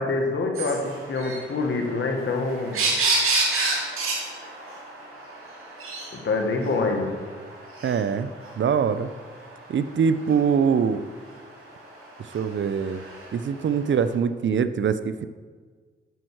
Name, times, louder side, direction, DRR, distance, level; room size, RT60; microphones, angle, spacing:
voice 1, 0.0-2.8 6.2-7.1, left 3 dB, 65° left, 2 dB, 1.8 m, -25 dB
sound 1, 0.5-13.9, right 3 dB, 85° right, 2.5 m, -31 dB
voice 2, 7.8-8.3 8.6-9.1 9.7-11.0 12.2-13.0 13.3-15.3, right 6 dB, 60° right, 12 dB, 0.6 m, -23 dB
9.2 x 6.3 x 6.3 m, 1.5 s
cardioid pair, 65°, 21 cm